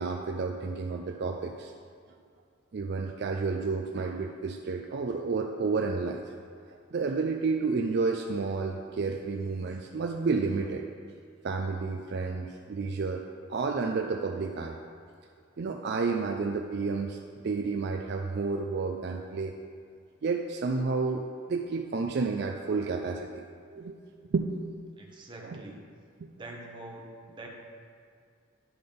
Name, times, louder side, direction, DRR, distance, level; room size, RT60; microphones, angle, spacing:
voice 1, 0.0-1.7 2.7-6.2 6.7-10.9 11.4-13.2 13.5-14.8 15.6-19.5 20.2-21.2 21.5-23.4 23.7-24.0 24.3-24.6 25.4-25.6 26.2-26.3, right 4 dB, 55° right, 3 dB, 0.4 m, -31 dB
voice 2, 25.0-25.8 26.4-27.5, right 2 dB, 25° right, 0 dB, 0.9 m, -44 dB
10.5 x 3.9 x 5.2 m, 2.3 s
head